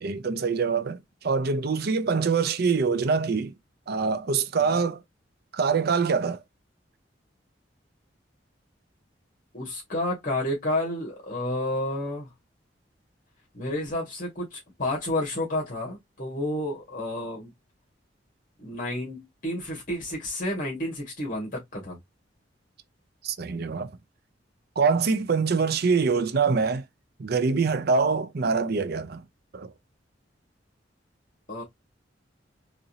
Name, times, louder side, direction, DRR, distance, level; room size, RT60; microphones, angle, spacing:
voice 1, 0.0-3.5 3.9-5.0 5.5-6.4 23.2-23.9 24.8-26.8 27.2-29.2 29.5-29.7, right 5 dB, 60° right, 0.6 m, -24 dB
voice 2, 9.5-12.3 13.5-17.5 18.6-22.0 31.5-31.6, left 1 dB, 50° left, 1.8 m, -30 dB
4.1 x 2.6 x 2.7 m
head